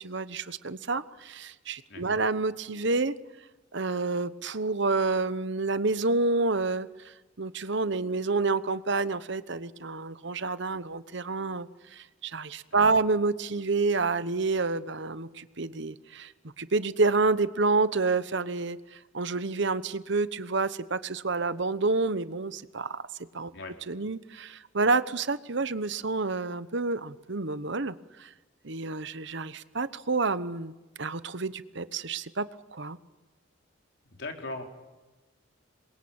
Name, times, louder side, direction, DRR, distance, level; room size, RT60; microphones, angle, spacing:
voice 1, 0.0-3.2 3.7-16.3 16.6-23.0 23.3-23.5 23.9-28.3 28.6-30.7 31.0-33.0, right 3 dB, 60° right, 14 dB, 1.1 m, -29 dB
voice 2, 1.9-2.2 12.7-13.0 23.5-23.8 34.1-34.6, left 2 dB, 60° left, 4 dB, 4.1 m, -40 dB
28.0 x 22.5 x 8.8 m, 1.2 s
head